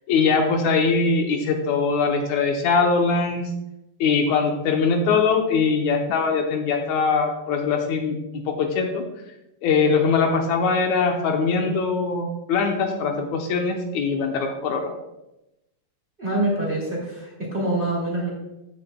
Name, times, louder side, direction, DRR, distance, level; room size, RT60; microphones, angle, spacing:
voice 1, 0.1-3.4 4.0-8.2 8.5-9.0 9.6-14.9, left 4 dB, 80° left, 3 dB, 2.1 m, -22 dB
voice 2, 16.2-18.3, right 1 dB, 20° right, -4 dB, 2.4 m, -25 dB
14.5 x 6.8 x 2.2 m, 0.92 s
omnidirectional pair, 3.4 m